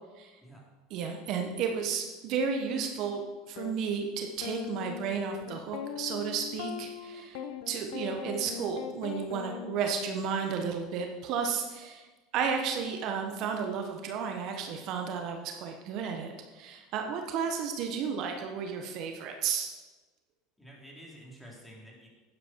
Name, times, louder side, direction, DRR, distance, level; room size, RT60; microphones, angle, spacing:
voice 1, 0.9-12.1 12.3-19.7, right 6 dB, 55° right, 4 dB, 1.3 m, -33 dB
sound 1, 3.6-3.7 4.4-10.7, left 9 dB, 75° left, 0.9 m, -40 dB
voice 2, 20.6-22.1, equal, 5° left, -3 dB, 3.9 m, -50 dB
11.0 x 10.0 x 4.7 m, 1.2 s
supercardioid pair, 100°, 0 cm